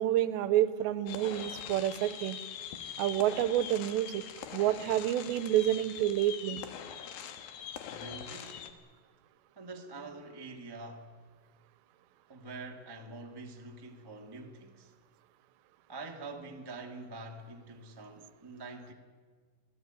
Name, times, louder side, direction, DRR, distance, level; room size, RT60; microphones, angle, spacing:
voice 1, 0.0-2.4 3.0-4.3 4.5-6.7, right 12 dB, 85° right, 3.0 m, -29 dB
sound 1, 1.1-8.7, left 8 dB, 65° left, 2.9 m, -43 dB
voice 2, 7.8-8.7 9.5-11.1 12.3-14.9 15.9-18.9, right 3 dB, 35° right, 0.4 m, -45 dB
26.0 x 17.0 x 9.1 m
omnidirectional pair, 5.0 m